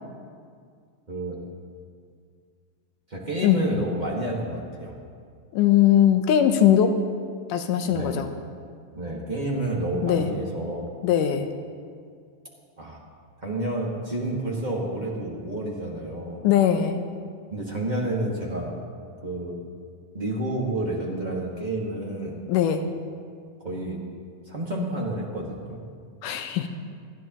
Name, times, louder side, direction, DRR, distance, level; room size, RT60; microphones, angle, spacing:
voice 1, 1.1-1.4 3.1-5.0 7.9-8.2 8.9-10.9 12.8-13.0 13.4-16.4 17.5-18.7 19.2-19.6 20.1-22.4 23.6-24.0 24.5-25.8, right 1 dB, 30° right, -4 dB, 0.8 m, -29 dB
voice 2, 5.5-7.0 7.5-8.3 10.0-10.3 11.0-11.5 16.4-17.1 22.5-22.9 26.2-26.7, left 10 dB, 80° left, 7 dB, 2.3 m, -20 dB
29.0 x 11.0 x 3.0 m, 2.2 s
omnidirectional pair, 3.9 m